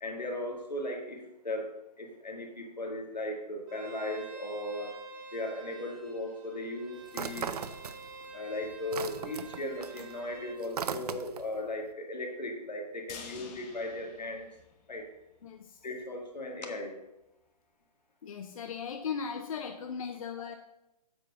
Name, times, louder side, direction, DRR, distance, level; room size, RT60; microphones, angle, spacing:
voice 1, 0.0-5.0 5.3-7.6 8.3-14.5 14.9-15.1 15.8-17.0, left 1 dB, 80° left, 2 dB, 1.9 m, -37 dB
Bowed string instrument, 3.7-10.6, right 4 dB, 15° right, 0.9 m, -48 dB
sound 1, 7.1-8.3 8.6-11.6, right 6 dB, 65° right, 0.6 m, -38 dB
sound 2, 13.1-15.2 15.6-15.7 16.0-16.1, left 6 dB, 25° left, 0.9 m, -49 dB
voice 2, 15.4-15.8 18.2-20.6, left 6 dB, 55° left, 6 dB, 0.6 m, -38 dB
7.8 x 4.6 x 5.4 m, 0.90 s
figure-of-eight pair, 140°, 21 cm